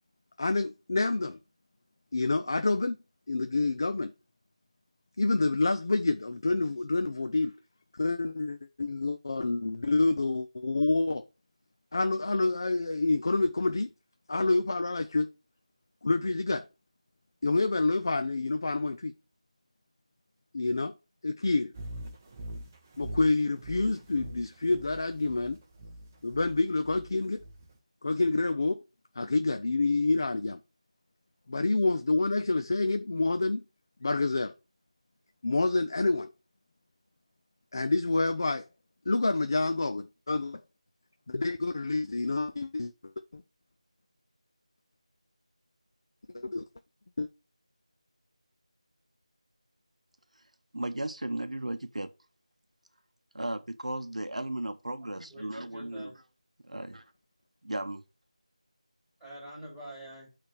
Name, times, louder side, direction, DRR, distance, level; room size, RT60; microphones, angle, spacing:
voice 1, 0.4-1.4 2.1-3.0 3.3-4.1 5.2-7.5 7.9-11.3 11.9-13.9 14.3-15.3 16.0-16.7 17.4-19.1 20.5-20.9 21.2-21.7 23.0-25.6 26.2-27.4 28.0-28.8 29.2-30.6 31.5-33.6 34.0-34.5 35.4-36.3 37.7-38.6 39.1-40.6 41.3-43.4 46.3-46.6 47.2-47.3, left 3 dB, 35° left, 0.4 m, -28 dB
sound 1, 21.7-27.8, right 1 dB, 15° right, 0.6 m, -44 dB
voice 2, 50.7-52.1 53.3-56.1 56.6-57.0 57.6-58.0, right 1 dB, 90° right, 0.8 m, -35 dB
voice 3, 55.1-56.1 56.7-56.9 59.2-60.3, right 1 dB, 5° left, 2.9 m, -46 dB
8.4 x 3.4 x 6.1 m
figure-of-eight pair, 170°, 4 cm